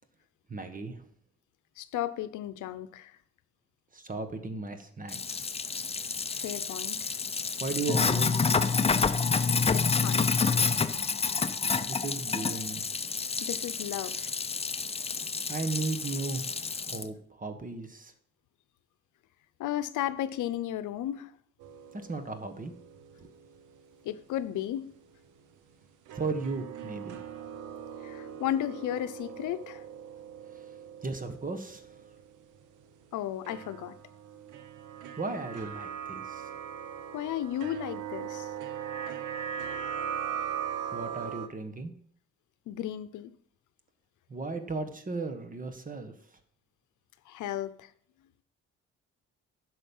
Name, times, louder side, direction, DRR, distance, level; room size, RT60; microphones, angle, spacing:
voice 1, 0.5-1.0 3.9-5.4 7.6-9.0 11.9-12.8 15.5-16.5 16.8-18.1 21.9-22.7 23.2-23.3 26.1-27.2 30.5-30.7 31.0-31.9 35.2-36.5 40.9-41.9 44.3-46.1, right 3 dB, 25° right, 8 dB, 1.5 m, -36 dB
voice 2, 1.8-3.2 6.3-7.1 9.7-10.2 13.4-14.3 19.6-21.3 24.0-24.9 28.0-29.8 33.1-33.9 37.1-38.5 42.7-43.3 47.3-47.9, left 12 dB, 80° left, 13 dB, 0.8 m, -34 dB
Sink (filling or washing), 5.1-17.0, left 5 dB, 20° left, 0.6 m, -29 dB
sound 1, 21.6-24.1 24.4-24.5 26.1-32.6 33.5-41.5, right 8 dB, 85° right, 1.0 m, -40 dB
11.0 x 6.5 x 5.5 m, 0.62 s
cardioid pair, 90°, 30 cm